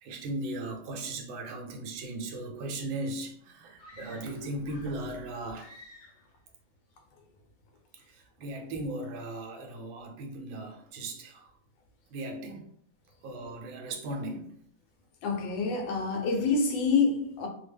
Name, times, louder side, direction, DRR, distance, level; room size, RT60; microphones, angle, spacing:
voice 1, 0.0-6.1 7.9-11.5 12.1-12.7 13.2-14.6, right 2 dB, 80° right, 1.4 m, -37 dB
sound 1, 3.8-5.1 5.5-6.3, left 2 dB, 60° left, 1.4 m, -52 dB
voice 2, 15.2-17.5, left 4 dB, 75° left, 1.4 m, -27 dB
3.4 x 2.1 x 3.3 m
omnidirectional pair, 2.1 m